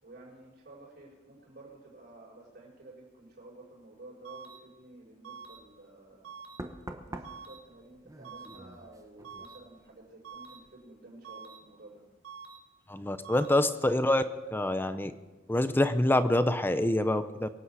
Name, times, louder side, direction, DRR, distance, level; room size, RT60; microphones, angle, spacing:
voice 1, 0.0-6.3 7.0-12.0, right 2 dB, 55° right, -7 dB, 5.8 m, -52 dB
sound 1, 4.2-4.6 5.2-5.6 6.2-6.6 7.2-7.6 8.2-8.6 9.2-9.6 10.2-10.6 11.2-11.6 12.2-12.6 13.2-13.6, right 6 dB, 80° right, 2.4 m, -46 dB
Knock, 5.5-5.7 6.6-10.1 10.3-10.7, right 1 dB, 15° right, 1.0 m, -46 dB
voice 2, 12.9-14.2 14.5-15.1 15.5-17.5, left 1 dB, 10° left, 11 dB, 0.6 m, -26 dB
23.5 x 8.6 x 4.8 m, 1.2 s
head